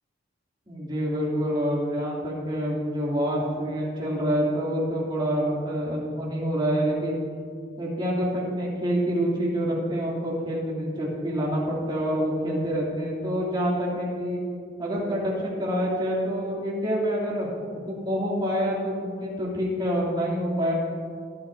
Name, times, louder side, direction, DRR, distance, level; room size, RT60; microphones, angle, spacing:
voice 1, 0.7-7.2 7.8-14.4 14.8-17.5 17.7-20.7, equal, 25° right, -6 dB, 3.1 m, -27 dB
18.5 x 10.5 x 2.8 m, 2.4 s
head